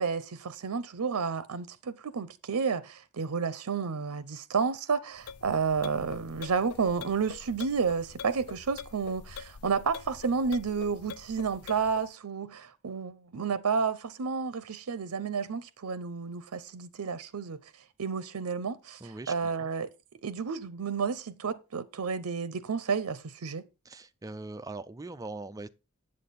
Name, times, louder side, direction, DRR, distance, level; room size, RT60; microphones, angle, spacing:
voice 1, 0.0-17.6 18.0-19.9 20.2-23.6, right 5 dB, 80° right, 0.6 m, -31 dB
sound 1, 5.2-12.1, left 7 dB, 80° left, 0.4 m, -45 dB
voice 2, 19.0-19.3 19.6-19.7 23.9-25.7, right 2 dB, 15° right, 0.4 m, -41 dB
8.4 x 7.6 x 4.1 m
head